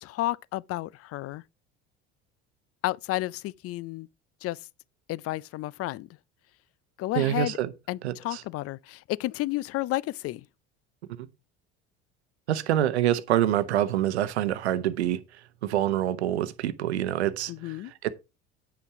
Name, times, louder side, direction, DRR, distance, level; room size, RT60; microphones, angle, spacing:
voice 1, 0.0-1.4 2.8-4.1 4.4-4.6 5.1-6.1 7.0-7.6 7.9-10.4 17.5-17.9, left 17 dB, 45° left, 0.5 m, -31 dB
voice 2, 7.2-7.7 8.0-8.4 11.2-11.3 12.5-15.2 15.6-17.7 18.0-18.1, right 12 dB, 90° right, 0.9 m, -26 dB
9.1 x 5.7 x 4.8 m
hypercardioid pair, 80°, 32 cm